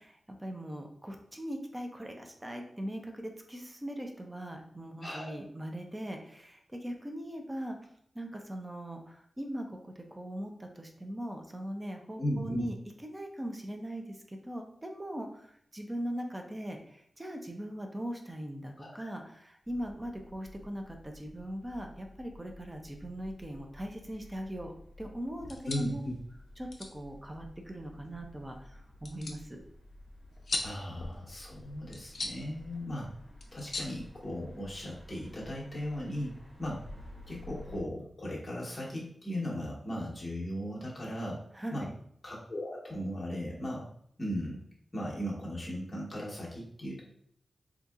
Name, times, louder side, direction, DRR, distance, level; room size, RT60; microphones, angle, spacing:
voice 1, 0.0-7.8 8.1-12.7 13.0-24.7 25.0-26.0 26.6-29.6 41.5-41.9, equal, 15° right, 3 dB, 0.5 m, -40 dB
voice 2, 5.0-5.4 12.2-12.6 18.8-19.1 25.6-26.1 30.6-33.1 33.5-36.8 37.3-41.4 41.7-41.9 42.2-43.8 44.2-44.6 44.9-47.0, equal, 25° left, -5 dB, 1.1 m, -37 dB
sound 1, 19.6-37.8, left 1 dB, 35° right, 1.1 m, -52 dB
sound 2, 25.4-34.8, left 3 dB, 60° left, 0.4 m, -43 dB
4.0 x 2.7 x 2.4 m, 0.66 s
wide cardioid pair, 130°, 0 cm